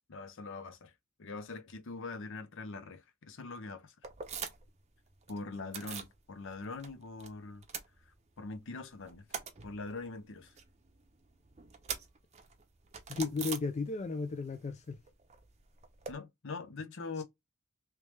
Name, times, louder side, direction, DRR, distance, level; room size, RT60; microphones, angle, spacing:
voice 1, 0.1-0.9 1.2-3.9 5.3-7.6 8.0-9.4 9.6-10.6 16.1-17.2, left 3 dB, 60° left, 0.7 m, -43 dB
sound 1, 4.0-4.8 5.1-6.2 6.5-7.3 7.5-8.6 8.9-14.3 14.5-16.1, right 6 dB, 30° right, 0.6 m, -44 dB
voice 2, 13.1-15.0, left 4 dB, 30° left, 0.3 m, -34 dB
3.3 x 3.1 x 3.1 m
head